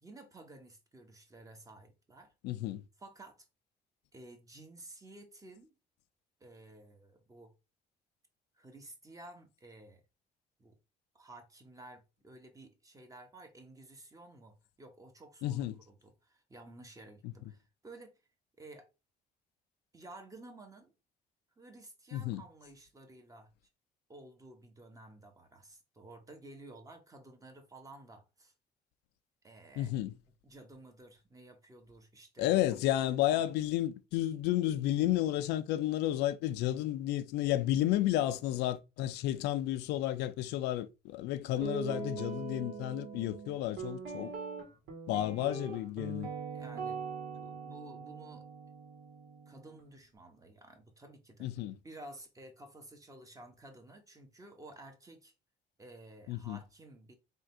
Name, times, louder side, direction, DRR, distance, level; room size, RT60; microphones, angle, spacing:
voice 1, 0.0-2.3 3.0-3.5 4.1-5.8 6.4-7.5 8.6-10.0 10.6-10.8 11.1-18.1 18.6-18.9 19.9-20.9 21.6-23.5 24.1-28.5 29.4-29.9 30.4-32.6 33.3-33.4 41.5-41.7 46.5-47.0 47.3-48.5 49.5-51.5 51.8-55.3 55.8-57.1, right 2 dB, 20° right, 1.1 m, -53 dB
voice 2, 2.4-2.8 15.4-15.8 17.2-17.3 22.1-22.4 29.8-30.1 32.4-44.3 45.1-46.3 51.4-51.8 56.3-56.6, left 13 dB, 90° left, 0.5 m, -32 dB
Guitar, 41.6-49.8, right 5 dB, 75° right, 1.5 m, -42 dB
3.7 x 2.5 x 4.4 m
cardioid pair, 110°, 17 cm